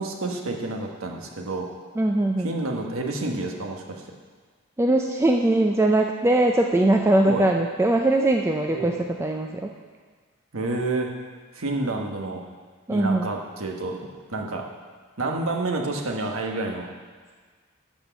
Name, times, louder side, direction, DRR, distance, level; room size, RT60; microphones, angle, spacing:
voice 1, 0.0-1.7 2.4-4.0 7.3-7.5 8.7-8.9 10.5-11.1 11.5-12.4 12.9-14.6 15.2-16.9, right 2 dB, 85° right, 1 dB, 1.2 m, -29 dB
voice 2, 2.0-2.5 4.8-9.7 12.9-13.3, right 1 dB, 10° right, 2 dB, 0.4 m, -21 dB
11.5 x 4.5 x 6.9 m, 1.5 s
head